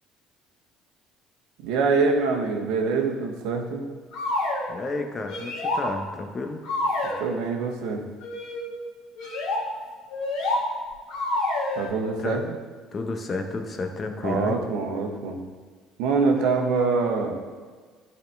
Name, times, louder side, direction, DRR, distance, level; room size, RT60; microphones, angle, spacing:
voice 1, 1.6-3.9 7.2-8.0 11.8-12.6 14.2-15.4 16.0-17.4, right 4 dB, 70° right, 3 dB, 1.0 m, -24 dB
sound 1, 4.1-4.7 5.3-5.9 6.6-7.2 8.2-8.6 9.2-9.6 10.1-10.6 11.1-11.9, left 2 dB, 65° left, 2.0 m, -27 dB
voice 2, 4.7-6.6 12.2-12.4 12.9-14.6, left 3 dB, 35° left, 5 dB, 0.9 m, -31 dB
11.5 x 4.2 x 3.4 m, 1.5 s
hypercardioid pair, 60°, 0 cm